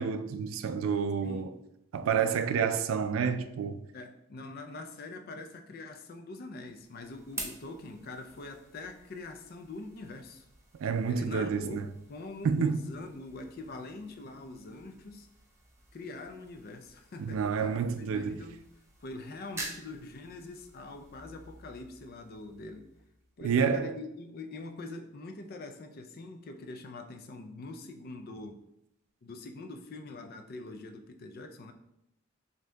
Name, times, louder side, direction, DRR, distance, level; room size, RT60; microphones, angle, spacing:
voice 1, 0.0-1.5 1.9-3.8 10.8-11.8 12.4-12.8 17.3-18.3 23.4-23.9, right 6 dB, 80° right, 0.3 m, -29 dB
voice 2, 3.9-10.5 11.1-15.3 15.9-18.6 19.0-22.9 23.4-28.6 29.2-31.7, left 2 dB, 50° left, 0.4 m, -44 dB
sound 1, 6.5-23.4, right 2 dB, 15° right, 0.6 m, -49 dB
6.0 x 2.7 x 2.2 m
head